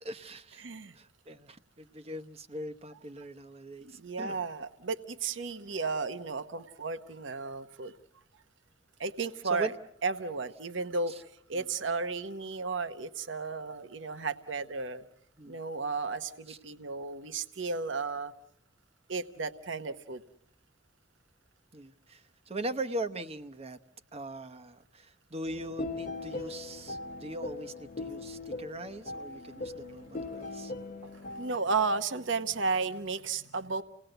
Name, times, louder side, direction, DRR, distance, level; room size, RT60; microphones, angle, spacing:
voice 1, 0.0-0.6 1.0-4.4 9.4-9.7 11.1-11.2 11.5-11.6 15.4-15.6 16.5-16.6 21.7-23.8 24.1-30.7, right 1 dB, 30° right, 10 dB, 0.9 m, -40 dB
voice 2, 0.6-0.9 4.0-7.9 9.0-9.7 10.0-11.1 11.5-15.0 15.5-18.3 19.1-20.2 31.4-33.8, right 4 dB, 75° right, 11 dB, 1.0 m, -33 dB
sound 1, 25.5-31.6, left 3 dB, 40° left, 1.0 m, -40 dB
29.0 x 18.5 x 7.9 m, 0.74 s
head